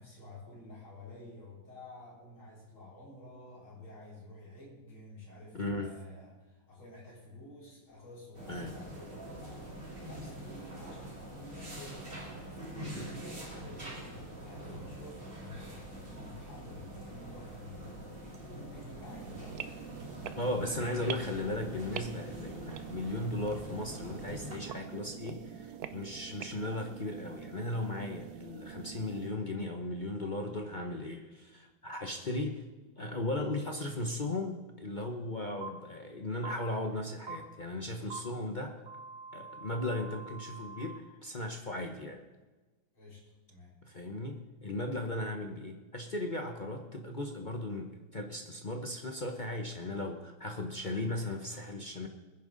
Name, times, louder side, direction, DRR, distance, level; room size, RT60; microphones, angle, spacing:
voice 1, 0.0-18.1 18.5-19.6 42.9-43.8, left 1 dB, 70° left, -7 dB, 5.5 m, -50 dB
voice 2, 5.5-5.9 8.5-8.7 20.3-32.6 33.0-38.8 39.3-42.2 43.8-52.1, left 1 dB, 45° left, 3 dB, 0.6 m, -37 dB
sound 1, 8.3-24.6, right 1 dB, 25° right, 3.1 m, -45 dB
sound 2, 19.0-29.3, right 9 dB, 70° right, 0.9 m, -45 dB
sound 3, 35.6-35.7 36.4-36.5 37.3-37.4 38.1-38.2 38.9-41.0, right 5 dB, 40° right, 2.2 m, -44 dB
20.5 x 10.5 x 4.0 m, 1.2 s
omnidirectional pair, 2.4 m